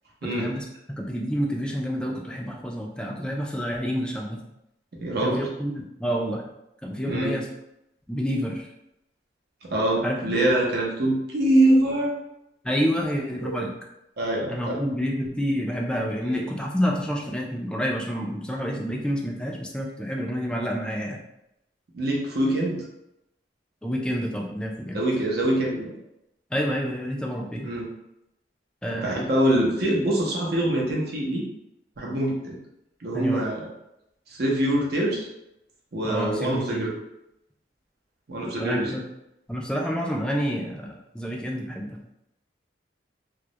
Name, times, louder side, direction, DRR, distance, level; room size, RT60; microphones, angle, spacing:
voice 1, 0.2-4.4 5.2-6.4 6.8-7.5 8.1-8.7 10.0-10.2 12.6-13.7 14.5-21.2 23.8-25.0 26.5-27.7 28.8-29.3 32.1-32.2 33.1-33.5 36.0-36.9 38.6-39.0 39.5-42.0, equal, 5° left, 0 dB, 0.3 m, -28 dB
voice 2, 4.9-5.4 7.1-7.3 9.6-12.1 13.4-13.6 14.2-14.8 16.2-16.4 21.9-22.8 24.9-26.0 27.6-27.9 29.0-31.4 32.0-32.6 33.0-33.7 34.3-35.3 35.9-36.9 38.3-38.9, right 1 dB, 65° right, -3 dB, 0.6 m, -24 dB
2.2 x 2.0 x 2.8 m, 0.85 s
head